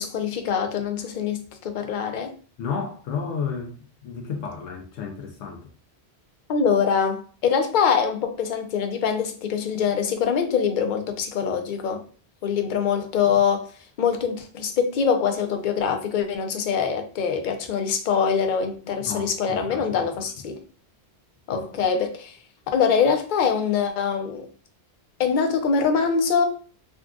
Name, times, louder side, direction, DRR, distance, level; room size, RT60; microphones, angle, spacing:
voice 1, 0.0-2.3 6.5-12.0 12.4-13.7 14.0-20.6 21.5-22.4 22.7-24.5 25.2-26.5, left 6 dB, 60° left, 0.5 m, -24 dB
voice 2, 2.6-3.7 4.0-5.6 19.1-20.0 21.5-21.6, left 6 dB, 90° left, 0.9 m, -32 dB
3.7 x 2.2 x 2.4 m
omnidirectional pair, 1.1 m